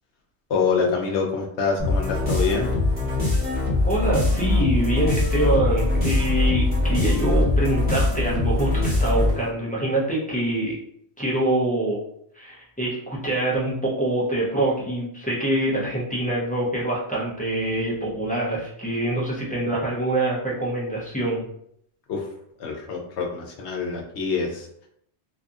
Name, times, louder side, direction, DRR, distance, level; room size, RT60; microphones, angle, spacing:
voice 1, 0.5-2.7 22.1-22.3 22.6-24.9, left 5 dB, 75° left, 0 dB, 0.9 m, -26 dB
sound 1, 1.8-9.5, left 2 dB, 10° right, 1.2 m, -22 dB
voice 2, 3.8-10.8 11.2-12.0 12.3-21.4, right 1 dB, 10° left, -6 dB, 0.4 m, -25 dB
2.7 x 2.5 x 2.4 m, 0.71 s
omnidirectional pair, 1.2 m